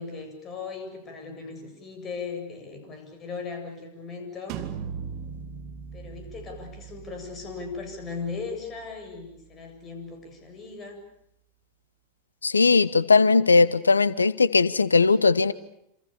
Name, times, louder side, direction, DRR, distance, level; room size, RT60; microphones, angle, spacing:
voice 1, 0.0-4.7 5.9-11.0, left 4 dB, 25° left, 5 dB, 7.9 m, -38 dB
sound 1, 4.5-10.1, right 7 dB, 40° right, 2.5 m, -40 dB
voice 2, 12.4-15.5, left 4 dB, 75° left, 19 dB, 1.1 m, -19 dB
28.0 x 27.5 x 7.1 m, 0.77 s
figure-of-eight pair, 90°, 0 cm